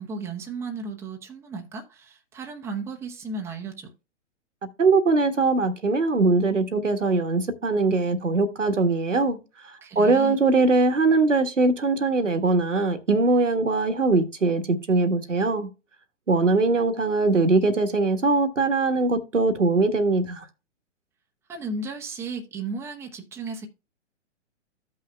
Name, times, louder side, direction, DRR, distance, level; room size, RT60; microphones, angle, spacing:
voice 1, 0.0-3.9 9.8-10.4 21.5-23.7, right 3 dB, 5° right, 0.8 m, -34 dB
voice 2, 4.8-9.4 9.6-15.7 16.3-20.4, right 3 dB, 80° right, 1.4 m, -21 dB
15.0 x 5.6 x 2.2 m
figure-of-eight pair, 120°, 36 cm